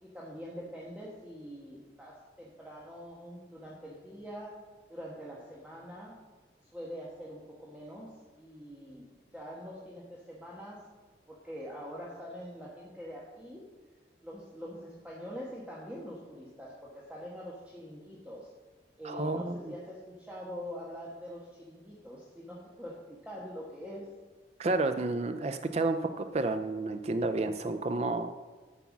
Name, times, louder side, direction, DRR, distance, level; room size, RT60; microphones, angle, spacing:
voice 1, 0.0-4.6 4.9-6.2 6.7-10.8 11.3-13.6 14.2-18.5 19.0-24.1, equal, 10° right, -5 dB, 1.3 m, -44 dB
voice 2, 19.0-19.5 24.6-28.4, right 2 dB, 35° right, 9 dB, 0.4 m, -30 dB
11.0 x 5.9 x 7.2 m, 1.4 s
head